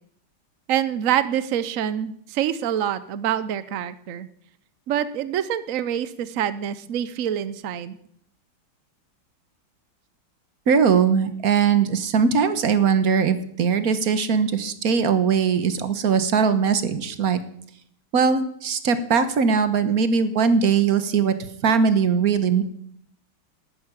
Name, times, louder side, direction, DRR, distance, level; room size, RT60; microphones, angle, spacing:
voice 1, 0.7-4.3 4.9-8.0, right 10 dB, 80° right, 14 dB, 0.7 m, -26 dB
voice 2, 10.7-17.4 18.1-21.3 21.6-22.6, right 6 dB, 50° right, 11 dB, 1.4 m, -20 dB
13.0 x 9.5 x 9.7 m, 0.69 s
omnidirectional pair, 2.4 m